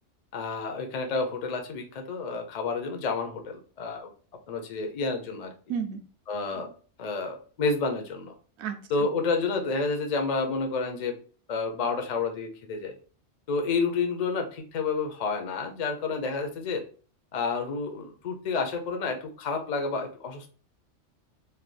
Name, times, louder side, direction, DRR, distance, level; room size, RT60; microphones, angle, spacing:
voice 1, 0.3-4.1 4.5-5.5 6.3-6.7 7.0-8.3 8.9-11.2 11.5-12.9 13.5-16.9 17.3-20.5, left 4 dB, 50° left, 4 dB, 0.4 m, -30 dB
voice 2, 5.7-6.1 8.6-9.1, right 7 dB, 70° right, 8 dB, 0.8 m, -33 dB
3.3 x 2.2 x 2.4 m, 0.40 s
omnidirectional pair, 1.3 m